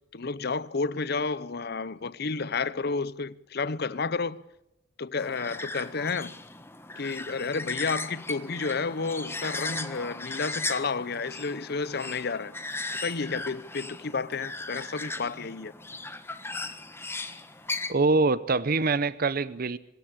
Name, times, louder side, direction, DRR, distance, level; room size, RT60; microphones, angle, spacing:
voice 1, 0.1-4.4 5.0-6.3 7.0-12.5 13.0-15.7, left 4 dB, 55° left, 0.8 m, -31 dB
sound 1, 5.2-17.9, left 3 dB, 15° left, 1.3 m, -37 dB
voice 2, 17.9-19.8, right 3 dB, 50° right, 0.7 m, -24 dB
24.5 x 14.0 x 8.5 m
head